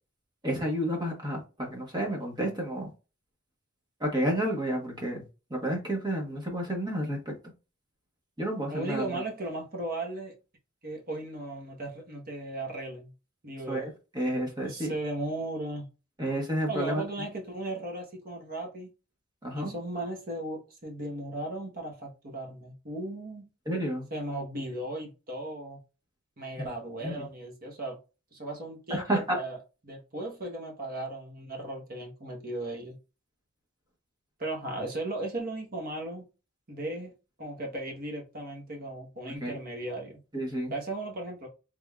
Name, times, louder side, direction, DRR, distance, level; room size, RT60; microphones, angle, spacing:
voice 1, 0.4-2.9 4.0-5.2 5.5-7.3 8.4-9.2 13.7-14.9 16.2-17.0 19.4-19.7 23.7-24.1 26.6-26.7 27.0-27.3 28.9-29.4 39.4-39.6 40.3-40.7, right 1 dB, 20° right, 1.1 m, -30 dB
voice 2, 8.7-10.3 10.8-13.1 13.4-13.9 14.6-15.9 16.7-18.9 19.5-23.5 24.1-25.8 26.4-28.0 28.3-29.6 29.8-33.0 34.4-36.2 36.7-37.1 37.4-40.2 40.7-41.5, right 2 dB, 45° right, 1.1 m, -36 dB
3.4 x 3.4 x 2.3 m
head